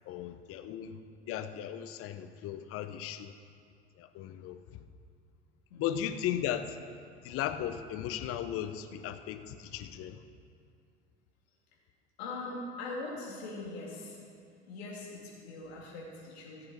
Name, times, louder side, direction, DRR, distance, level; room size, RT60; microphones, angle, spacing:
voice 1, 0.1-1.0 1.3-3.3 4.0-4.9 5.8-6.8 7.2-10.2, left 10 dB, 40° left, 10 dB, 0.8 m, -36 dB
voice 2, 12.2-14.2 14.6-16.7, left 2 dB, 65° left, -3 dB, 2.9 m, -41 dB
15.5 x 7.8 x 4.5 m, 2.3 s
figure-of-eight pair, 75°, 34 cm